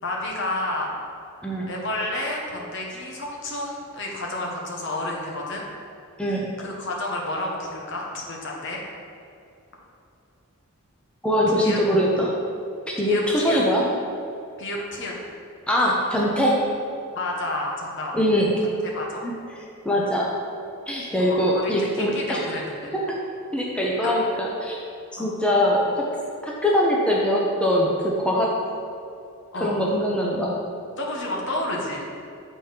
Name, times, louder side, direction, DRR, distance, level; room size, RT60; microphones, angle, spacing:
voice 1, 0.0-0.9 1.7-5.6 6.6-8.8 11.5-11.8 13.0-13.6 14.6-15.1 17.1-18.1 18.8-19.2 21.2-22.7 24.0-24.1 25.2-25.3 29.5-29.8 31.0-32.1, left 1 dB, 55° left, -1 dB, 1.1 m, -30 dB
voice 2, 11.2-12.4 13.0-13.8 15.7-16.6 18.1-18.5 19.2-19.3 19.8-20.3 20.9-22.5 22.9-23.0 23.5-24.8 25.2-26.0 26.4-28.6 29.6-30.6, equal, 5° left, -4 dB, 0.7 m, -22 dB
7.5 x 4.4 x 5.0 m, 2.6 s
head